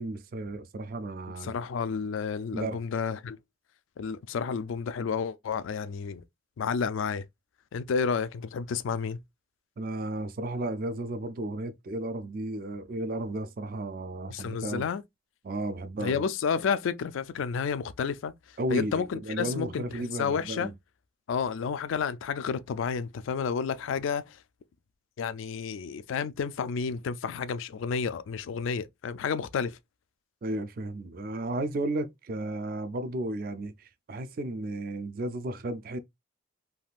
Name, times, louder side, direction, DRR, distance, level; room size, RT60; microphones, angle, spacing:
voice 1, 0.0-1.5 2.5-2.8 9.8-14.8 15.4-16.2 18.6-20.7 30.4-36.0, right 1 dB, 45° right, 0.3 m, -33 dB
voice 2, 1.4-3.4 4.0-6.2 6.6-7.2 7.7-9.2 14.3-15.0 16.0-20.7 21.3-24.4 25.2-29.8, left 6 dB, 70° left, 0.3 m, -31 dB
3.5 x 2.3 x 2.4 m
head